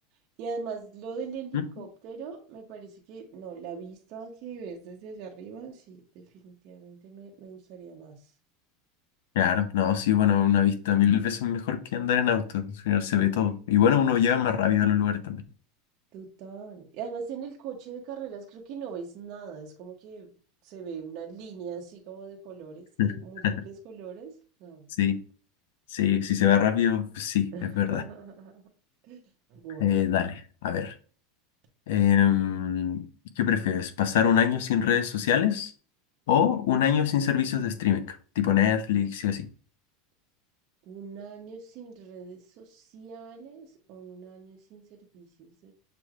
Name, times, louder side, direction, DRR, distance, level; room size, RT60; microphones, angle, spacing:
voice 1, 0.4-8.2 16.1-20.3 20.6-24.9 27.5-28.6 29.0-29.2 29.5-29.9 40.9-45.7, right 6 dB, 50° right, 0.9 m, -41 dB
voice 2, 9.4-15.4 23.0-23.1 23.4-23.5 25.0-25.2 25.9-28.0 29.8-30.9 31.9-33.0 33.4-35.7 36.3-38.0 38.4-39.5, left 9 dB, 80° left, 0.6 m, -24 dB
6.8 x 3.1 x 2.4 m
supercardioid pair, 140°, 0 cm